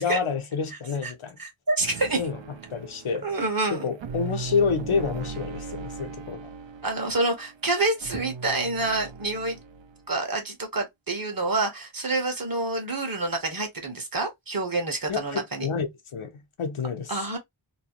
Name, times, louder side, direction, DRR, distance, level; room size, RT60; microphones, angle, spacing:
voice 1, 0.0-1.4 2.2-2.4 2.7-3.3 3.7-6.5 15.1-17.1, left 5 dB, 80° left, 0.8 m, -28 dB
voice 2, 1.4-2.2 3.2-3.9 6.8-9.6 10.1-15.7 17.1-17.4, right 2 dB, 45° right, 1.2 m, -27 dB
sound 1, 1.8-10.0, right 4 dB, 65° right, 0.6 m, -39 dB
3.0 x 2.2 x 2.9 m
wide cardioid pair, 60°, 49 cm